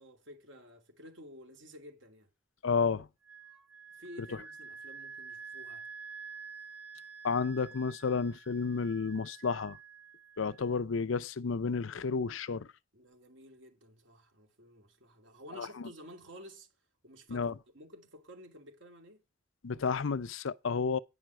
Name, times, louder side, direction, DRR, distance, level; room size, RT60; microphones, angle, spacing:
voice 1, 0.0-2.3 3.9-5.9 12.9-16.7 17.0-19.2, equal, 75° right, 2.7 m, -52 dB
voice 2, 2.6-3.1 7.2-9.8 10.4-12.7 15.6-15.7 17.3-17.5 19.6-21.0, left 5 dB, 90° left, 0.6 m, -31 dB
Wind instrument woodwind instrument, 3.2-10.7, right 5 dB, 5° right, 0.6 m, -49 dB
9.9 x 5.9 x 6.3 m
head